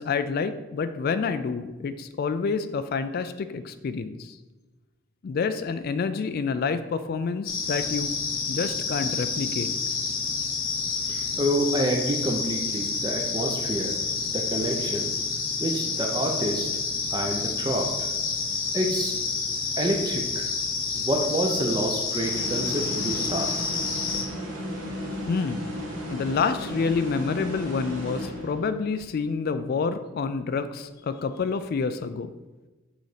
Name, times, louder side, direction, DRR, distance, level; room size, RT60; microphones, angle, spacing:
voice 1, 0.0-4.4 5.2-8.1 8.5-9.7 25.3-25.6 26.1-32.3, left 5 dB, 50° left, 11 dB, 0.3 m, -28 dB
sound 1, 7.5-24.2, left 5 dB, 85° left, 1.1 m, -29 dB
voice 2, 11.1-14.0 14.3-15.1 15.6-16.7 17.1-17.9 18.7-19.1 19.8-20.5 21.0-23.6, right 1 dB, 20° right, 1 dB, 0.6 m, -28 dB
sound 2, 22.2-28.8, equal, 75° right, 2.0 m, -35 dB
6.3 x 4.0 x 4.9 m, 1.2 s
head